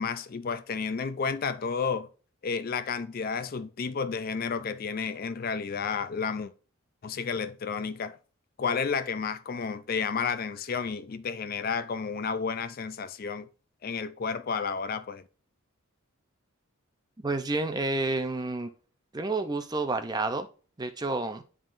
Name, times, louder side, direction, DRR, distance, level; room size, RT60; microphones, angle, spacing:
voice 1, 0.0-2.1 2.4-6.5 7.0-8.2 8.6-13.5 13.8-15.2, left 5 dB, 45° left, 0.4 m, -31 dB
voice 2, 17.2-18.7 19.1-20.5 20.8-21.4, right 2 dB, 20° right, 0.5 m, -29 dB
11.0 x 3.7 x 2.5 m
head